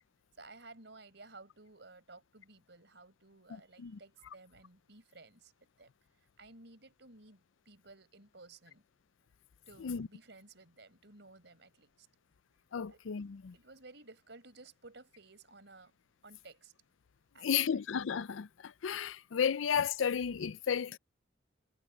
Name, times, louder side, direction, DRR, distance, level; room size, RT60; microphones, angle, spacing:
voice 1, 0.4-5.5 5.8-5.9 6.4-8.8 9.7-12.1 12.9-13.0 13.5-15.9 16.2-16.7 17.3-17.6, right 3 dB, 65° right, 5.3 m, -56 dB
voice 2, 3.5-4.0 9.8-10.1 12.7-13.5 17.4-21.0, left 7 dB, 85° left, 0.5 m, -33 dB
head